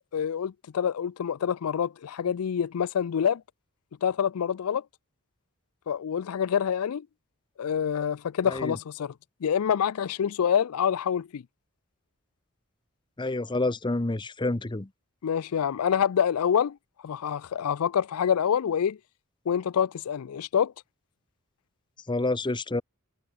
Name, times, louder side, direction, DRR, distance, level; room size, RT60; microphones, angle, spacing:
voice 1, 0.1-3.4 4.0-4.8 5.9-7.1 7.6-9.1 9.4-11.4 15.2-16.8 17.0-19.0 19.5-20.7, left 8 dB, 85° left, 0.4 m, -26 dB
voice 2, 13.2-14.9 22.1-22.8, left 2 dB, 20° left, 0.8 m, -28 dB
head